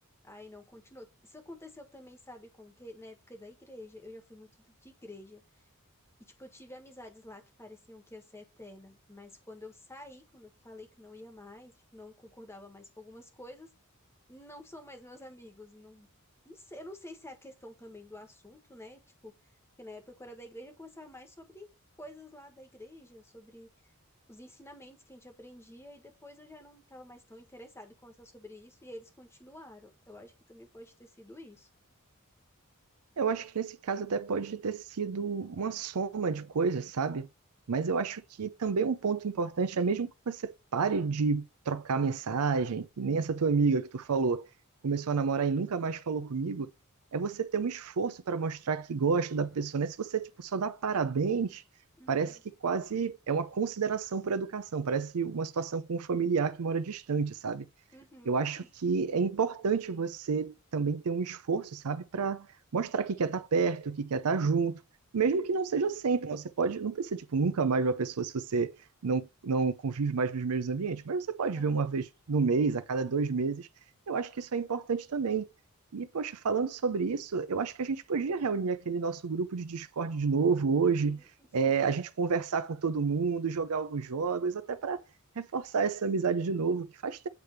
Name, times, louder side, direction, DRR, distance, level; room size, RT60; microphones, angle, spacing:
voice 1, 0.2-5.4 6.2-13.7 14.3-16.1 16.4-19.3 19.8-21.7 22.0-23.7 24.3-31.7 52.0-52.4 57.9-58.7 71.5-71.9 80.8-81.3 81.6-81.7, left 1 dB, 10° left, 1.4 m, -49 dB
voice 2, 33.2-37.3 37.7-44.5 44.8-46.7 47.1-51.6 52.1-57.7 58.3-62.5 62.7-64.8 65.1-68.7 69.0-73.7 74.1-75.5 75.9-81.2 81.5-85.0 85.4-87.3, right 5 dB, 85° right, 0.5 m, -30 dB
8.2 x 3.4 x 5.8 m
head